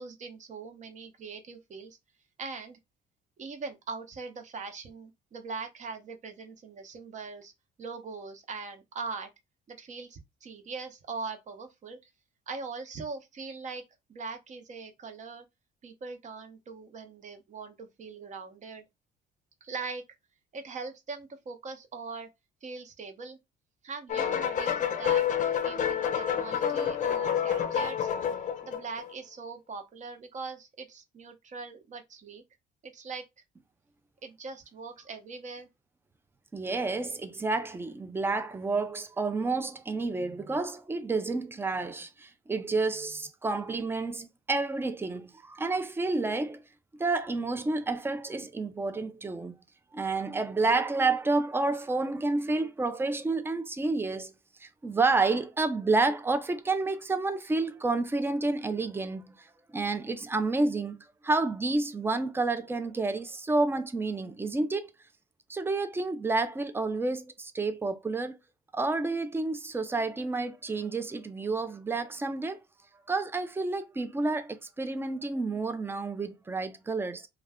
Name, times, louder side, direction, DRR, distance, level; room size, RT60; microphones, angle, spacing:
voice 1, 0.0-2.0 2.4-2.8 3.4-7.5 7.8-9.3 9.7-12.1 12.5-13.8 14.1-15.4 15.8-18.8 19.6-20.0 20.5-22.3 22.6-23.4 23.8-28.1 28.6-32.4 32.8-33.2 34.2-35.7, right 4 dB, 45° right, 0.8 m, -41 dB
sound 1, 24.1-29.1, left 8 dB, 45° left, 0.6 m, -28 dB
voice 2, 36.5-46.6 47.0-49.5 49.9-54.3 54.6-59.5 59.7-64.9 65.5-68.4 68.7-72.6 73.1-77.3, right 3 dB, 15° right, 0.4 m, -30 dB
2.4 x 2.2 x 3.4 m
cardioid pair, 105°, 18 cm